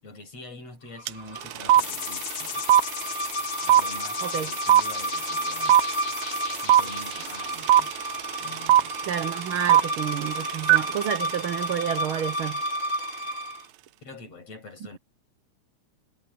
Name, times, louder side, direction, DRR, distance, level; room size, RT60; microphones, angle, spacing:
voice 1, 0.0-2.7 3.6-5.8 6.6-7.9 8.4-8.9 14.0-15.0, left 2 dB, 55° left, 7.9 m, -45 dB
sound 1, 1.0-13.7, equal, 25° left, 6.5 m, -32 dB
sound 2, 1.1-1.2 1.4-12.5, right 12 dB, 80° right, 2.1 m, -21 dB
sound 3, 1.8-8.5, left 11 dB, 80° left, 2.7 m, -37 dB
voice 2, 9.1-12.6, right 9 dB, 60° right, 1.5 m, -30 dB
omnidirectional pair, 3.4 m